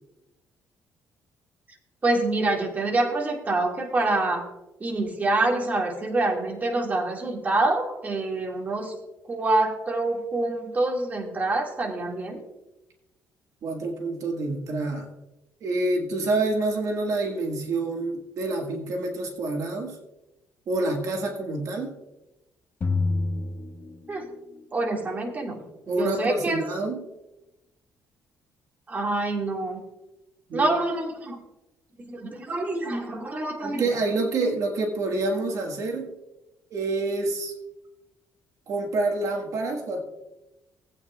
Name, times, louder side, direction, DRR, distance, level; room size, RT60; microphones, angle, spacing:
voice 1, 2.0-4.4 4.8-8.9 9.3-12.4 24.1-24.3 24.7-26.6 28.9-29.8 30.5-31.4 32.1-34.0, right 2 dB, 25° right, 0 dB, 1.9 m, -26 dB
voice 2, 13.6-15.1 15.6-20.0 20.7-21.9 25.9-27.0 30.5-30.7 33.6-36.1 36.7-37.5 38.7-40.0, right 2 dB, 60° right, 1 dB, 1.6 m, -27 dB
sound 1, 22.8-24.6, left 3 dB, 40° left, 1.4 m, -28 dB
18.5 x 8.7 x 2.3 m, 0.98 s
cardioid pair, 125°, 6 cm